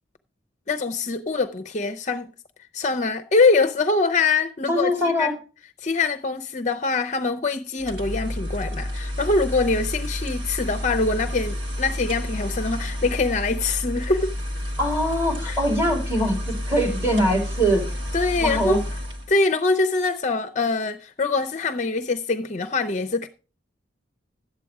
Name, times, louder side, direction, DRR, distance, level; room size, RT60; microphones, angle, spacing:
voice 1, 0.7-2.3 2.7-5.3 5.8-14.3 15.4-15.6 18.1-18.8 19.3-23.3, left 3 dB, 40° left, 0.5 m, -23 dB
voice 2, 4.7-5.3 14.8-17.8 18.4-18.8, equal, 10° right, 3.7 m, -22 dB
sound 1, 7.8-19.3, left 1 dB, 75° right, 1.4 m, -30 dB
11.5 x 8.3 x 4.7 m
head